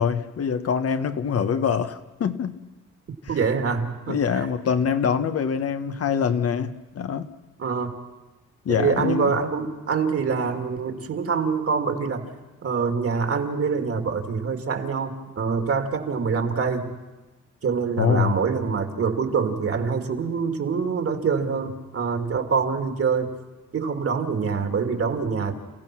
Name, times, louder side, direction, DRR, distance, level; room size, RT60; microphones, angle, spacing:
voice 1, 0.0-2.6 4.1-7.3 8.6-9.3 18.0-18.3, left 7 dB, 50° left, 9 dB, 1.2 m, -24 dB
voice 2, 3.3-4.2 7.6-7.9 8.7-12.3 12.6-16.9 17.6-23.3 23.7-25.5, right 5 dB, 50° right, 6 dB, 2.5 m, -25 dB
29.5 x 15.5 x 6.2 m, 1.1 s
cardioid pair, 90°, 30 cm